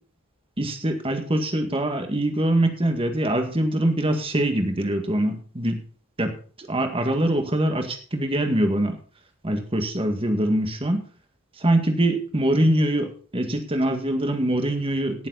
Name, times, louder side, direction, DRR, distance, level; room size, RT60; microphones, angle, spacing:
voice 1, 0.6-5.8 6.2-9.0 9.4-11.0 11.6-15.3, right 1 dB, 25° right, 5 dB, 1.9 m, -23 dB
17.5 x 7.4 x 4.1 m, 0.41 s
head